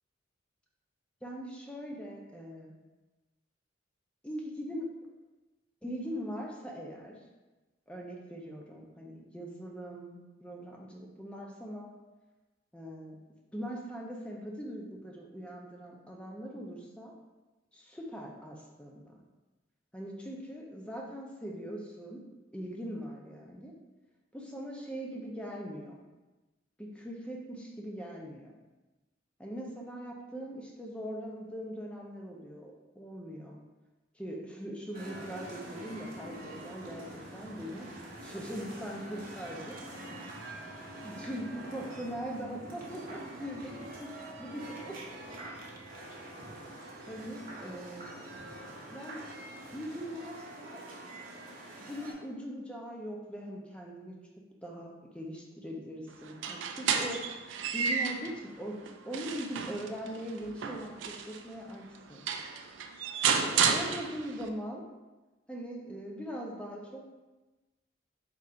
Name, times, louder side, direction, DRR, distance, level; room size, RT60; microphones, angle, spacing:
voice 1, 1.2-2.7 4.2-4.9 5.8-7.2 7.9-11.9 12.7-13.1 13.5-17.1 17.7-19.2 19.9-22.2 22.5-23.7 24.3-26.0 26.8-28.5 29.4-33.6 34.2-37.9 38.2-39.8 41.0-44.1 44.4-45.0 47.1-48.1 48.9-49.2 49.7-50.8 51.8-54.2 54.6-57.2 57.7-58.8 59.1-62.2 63.3-64.8 65.5-67.1, equal, 5° left, -1 dB, 0.5 m, -41 dB
sound 1, 34.9-52.1, right 1 dB, 45° right, 0.8 m, -45 dB
sound 2, 56.3-58.4 58.9-61.4 62.0-62.1 62.3-64.5, right 6 dB, 65° right, 0.3 m, -31 dB
3.7 x 2.5 x 4.3 m, 1.1 s
head